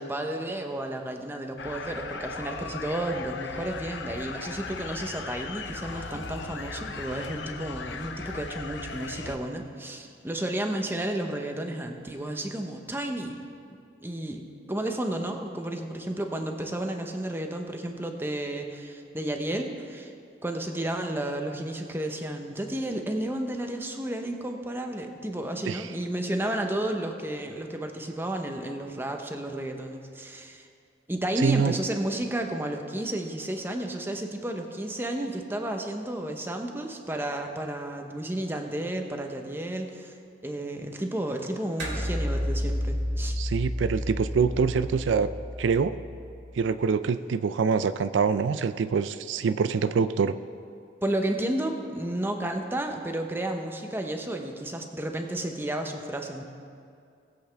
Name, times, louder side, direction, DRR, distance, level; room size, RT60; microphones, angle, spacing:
voice 1, 0.0-13.4 14.0-20.1 20.4-30.7 31.1-40.2 40.4-43.4 51.0-56.4, right 1 dB, 10° right, 4 dB, 0.8 m, -32 dB
sound 1, 1.6-9.4, left 4 dB, 70° left, 0.7 m, -38 dB
voice 2, 31.4-31.7 43.4-45.3 45.6-45.9 46.6-50.4, right 5 dB, 85° right, 13 dB, 0.4 m, -25 dB
sound 2, 41.8-46.5, equal, 65° right, 2.4 m, -31 dB
19.5 x 8.1 x 3.4 m, 2.4 s
head